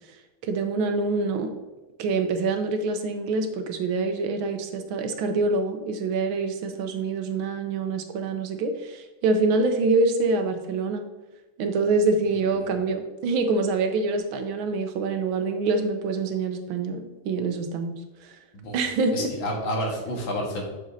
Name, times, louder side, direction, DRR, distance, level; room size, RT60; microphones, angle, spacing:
voice 1, 0.4-1.5 2.0-11.0 11.6-18.0 18.7-19.3, right 3 dB, 90° right, 6 dB, 1.6 m, -25 dB
voice 2, 19.1-20.6, equal, 80° left, 0 dB, 2.2 m, -29 dB
7.6 x 6.3 x 2.7 m, 1.2 s
omnidirectional pair, 2.1 m